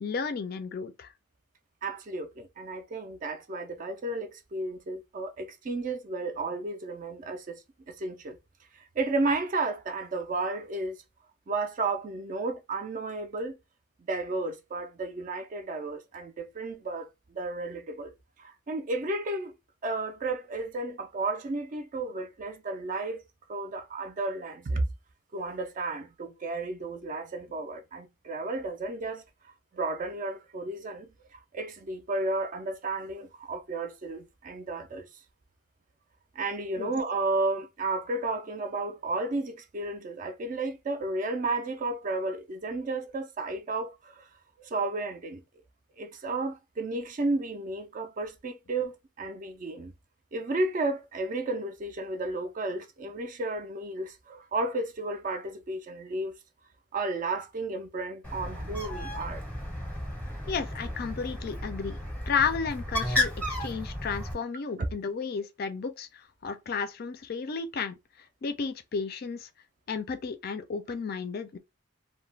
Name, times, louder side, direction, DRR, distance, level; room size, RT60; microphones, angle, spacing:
voice 1, 0.0-1.1 36.8-36.9 60.5-62.0 62.3-68.0 68.4-69.5 69.9-71.6, left 5 dB, 45° left, 0.3 m, -33 dB
voice 2, 1.8-7.6 7.9-8.4 8.7-11.0 11.5-13.6 14.0-18.1 18.4-19.5 19.8-23.2 23.5-24.9 25.3-35.1 36.3-44.3 44.6-45.4 46.0-49.9 50.3-56.3 56.9-59.4 64.8-64.9, right 2 dB, 35° right, 0.4 m, -33 dB
Bird, 58.2-64.3, left 1 dB, 5° left, 0.7 m, -33 dB
2.3 x 2.1 x 3.1 m
head